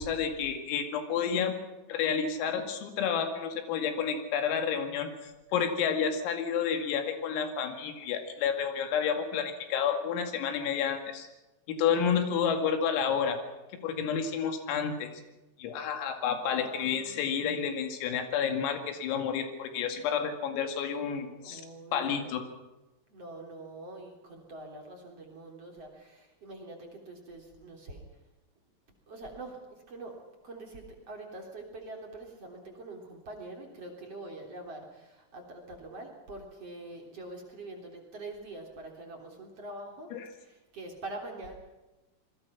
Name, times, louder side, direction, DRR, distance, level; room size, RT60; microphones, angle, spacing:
voice 1, 0.0-1.5 1.9-11.3 11.7-13.4 13.8-15.1 15.6-21.6 21.9-22.5 40.1-40.3, left 7 dB, 90° left, 6 dB, 4.9 m, -30 dB
voice 2, 16.5-17.7 21.4-22.3 23.1-28.0 29.1-30.1 30.4-40.1 40.4-41.5, right 2 dB, 35° right, 1 dB, 3.8 m, -44 dB
27.5 x 21.0 x 6.0 m, 1.1 s
omnidirectional pair, 5.9 m